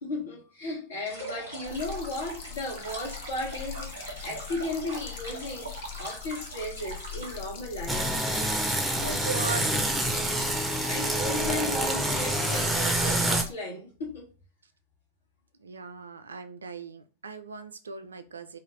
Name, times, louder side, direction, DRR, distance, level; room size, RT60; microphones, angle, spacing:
voice 1, 0.0-8.0 10.2-10.5 10.8-14.3, left 2 dB, 70° left, 1.2 m, -35 dB
sound 1, 1.1-7.4, right 2 dB, 90° left, 1.5 m, -41 dB
sound 2, 1.6-13.5, left 8 dB, 50° left, 0.5 m, -42 dB
sound 3, 7.9-13.4, right 1 dB, 5° right, 0.5 m, -27 dB
voice 2, 8.7-9.9 15.6-18.6, right 4 dB, 70° right, 0.3 m, -38 dB
2.5 x 2.4 x 3.0 m
figure-of-eight pair, 90°, 0 cm